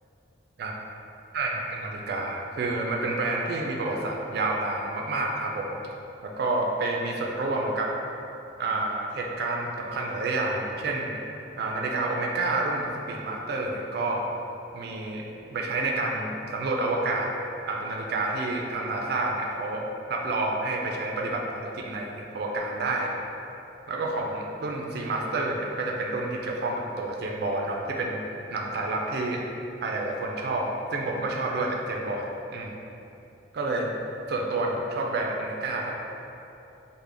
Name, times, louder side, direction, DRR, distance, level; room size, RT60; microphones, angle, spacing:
voice 1, 1.3-5.7 6.2-7.9 8.6-11.1 11.6-14.2 14.7-15.2 15.5-17.3 17.7-23.1 23.9-28.2 28.5-29.4 29.8-32.7 33.5-33.9 34.3-35.9, right 2 dB, 60° right, 0 dB, 0.3 m, -29 dB
3.6 x 2.1 x 3.3 m, 2.9 s
head